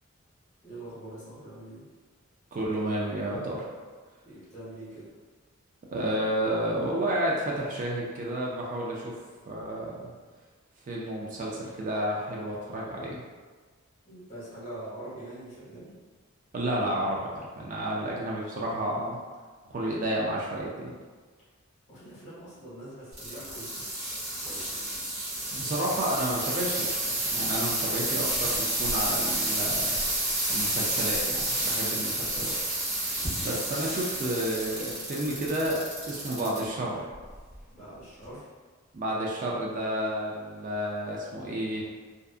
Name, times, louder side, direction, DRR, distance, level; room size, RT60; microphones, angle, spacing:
voice 1, 0.6-1.9 4.2-5.1 14.0-15.9 21.9-23.8 33.6-33.8 37.7-38.5, right 1 dB, 35° left, -9 dB, 1.1 m, -44 dB
voice 2, 2.5-3.7 5.9-9.2 9.5-10.1 10.9-13.2 16.5-19.2 19.7-20.9 25.5-30.0 30.5-32.6 33.4-37.0 38.9-41.8, right 1 dB, 40° right, -3 dB, 0.4 m, -31 dB
sound 1, 23.1-36.6 37.1-37.6 38.2-38.3, right 1 dB, 55° right, 1.0 m, -30 dB
2.6 x 2.4 x 2.3 m, 1.5 s
head